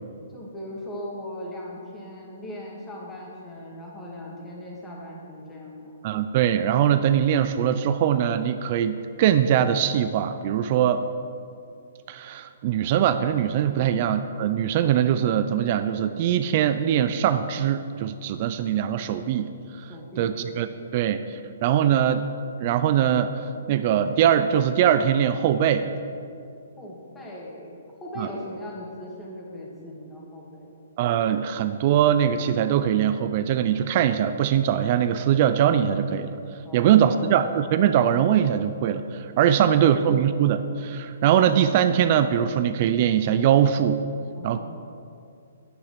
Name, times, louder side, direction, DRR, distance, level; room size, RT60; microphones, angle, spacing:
voice 1, 0.3-6.0 13.6-13.9 19.9-20.6 26.8-30.7 36.6-37.3 39.4-40.0 44.4-44.6, left 1 dB, 10° left, -4 dB, 2.2 m, -39 dB
voice 2, 6.0-11.1 12.1-19.5 19.8-19.9 20.2-20.7 20.9-21.2 21.6-22.3 22.6-23.3 23.7-25.9 28.2-28.3 31.0-36.3 36.7-44.0 44.4-44.6, right 9 dB, 40° right, 10 dB, 0.4 m, -22 dB
9.6 x 8.8 x 5.8 m, 2.5 s
hypercardioid pair, 150°, 0 cm